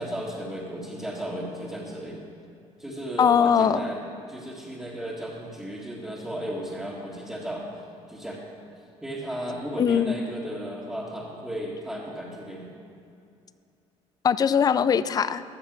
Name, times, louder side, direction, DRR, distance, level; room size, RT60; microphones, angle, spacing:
voice 1, 0.0-2.2 2.8-4.0 4.3-7.6 8.1-8.4 9.0-12.7, right 1 dB, 5° right, -8 dB, 1.8 m, -34 dB
voice 2, 3.2-3.8 9.8-10.1 14.2-15.4, left 7 dB, 30° left, 15 dB, 0.4 m, -21 dB
13.5 x 7.2 x 6.1 m, 2.5 s
cardioid pair, 115°, 12 cm